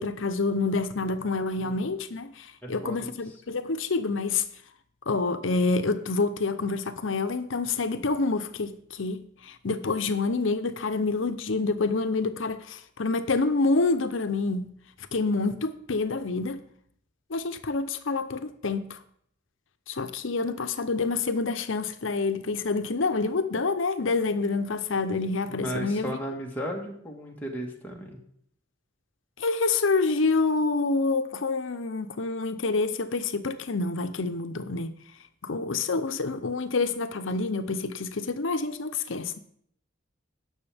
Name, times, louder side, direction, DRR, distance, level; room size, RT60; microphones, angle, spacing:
voice 1, 0.0-4.4 5.1-14.7 15.1-16.6 17.3-19.0 19.9-26.2 29.4-35.0 35.4-39.4, left 3 dB, 75° left, 0.7 m, -27 dB
voice 2, 2.6-3.2 25.5-28.2, right 1 dB, 10° left, 1.5 m, -35 dB
18.0 x 6.2 x 3.5 m
head